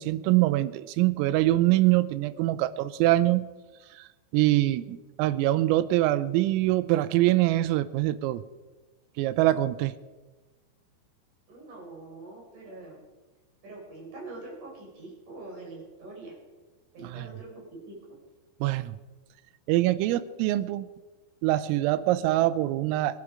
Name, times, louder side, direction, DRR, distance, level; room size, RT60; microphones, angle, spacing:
voice 1, 0.0-3.5 4.0-4.1 4.3-8.4 9.2-9.9 17.0-17.3 18.6-19.0 19.7-20.9 21.4-23.2, right 16 dB, 85° right, 15 dB, 3.4 m, -24 dB
voice 2, 11.5-13.0 13.6-16.3 16.9-18.2, right 2 dB, 40° right, -2 dB, 5.5 m, -44 dB
24.5 x 10.0 x 4.8 m, 1.2 s
omnidirectional pair, 5.9 m